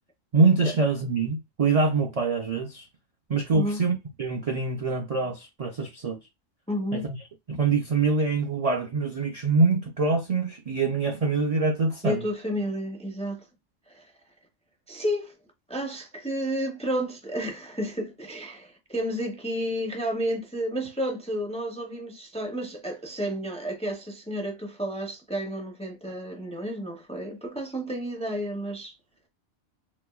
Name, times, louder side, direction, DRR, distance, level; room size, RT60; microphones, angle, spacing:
voice 1, 0.3-2.9 3.3-6.2 6.9-7.0 7.5-12.2, right 4 dB, 55° right, 0.4 m, -24 dB
voice 2, 6.7-7.1 12.0-13.4 13.9-14.0 14.9-15.3 15.7-28.9, equal, 10° left, 0.4 m, -31 dB
4.0 x 2.4 x 2.3 m
omnidirectional pair, 1.2 m